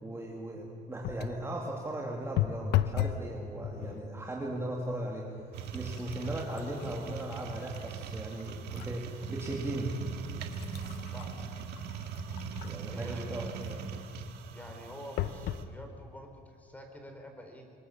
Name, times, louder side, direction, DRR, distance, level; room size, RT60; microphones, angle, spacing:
voice 1, 0.0-5.3 5.5-9.9 12.6-13.5, right 1 dB, 15° right, -2 dB, 2.7 m, -37 dB
sound 1, 1.0-1.5 2.4-3.3 3.6-4.1 4.9-5.0 5.4-9.0 9.5-9.6 10.2-13.0 15.2-15.7 16.4-16.5 16.7-16.8, left 13 dB, 75° left, 0.8 m, -36 dB
sound 2, 5.5-15.6, right 6 dB, 80° right, 1.8 m, -40 dB
voice 2, 11.1-11.5 12.9-13.8 14.5-17.6, equal, 10° left, 3 dB, 4.5 m, -47 dB
25.5 x 20.5 x 7.2 m, 2.3 s
cardioid pair, 110°, 17 cm